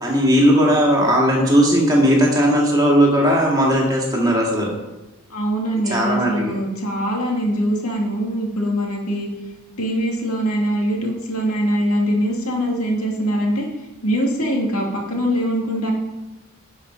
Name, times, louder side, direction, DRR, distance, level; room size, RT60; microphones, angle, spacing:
voice 1, 0.0-4.7 5.9-6.6, equal, 20° right, -2 dB, 2.2 m, -17 dB
voice 2, 5.3-9.3 9.8-13.7 14.0-15.9, equal, 85° left, -1 dB, 2.4 m, -22 dB
11.5 x 5.6 x 5.6 m, 1.1 s
head